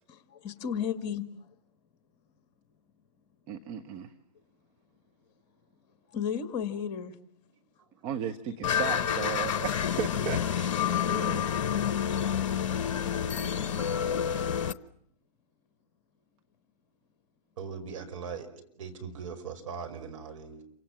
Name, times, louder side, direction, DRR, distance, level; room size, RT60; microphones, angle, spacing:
voice 1, 0.1-1.3 6.1-7.2, left 8 dB, 30° left, 2.1 m, -33 dB
voice 2, 3.5-4.1 8.0-10.8, right 8 dB, 30° right, 1.3 m, -35 dB
sound 1, 8.6-14.7, left 8 dB, 50° left, 1.0 m, -28 dB
voice 3, 10.8-11.5 17.6-18.5 18.8-20.6, right 6 dB, 50° right, 5.3 m, -39 dB
28.0 x 25.5 x 7.5 m
figure-of-eight pair, 120°, 21 cm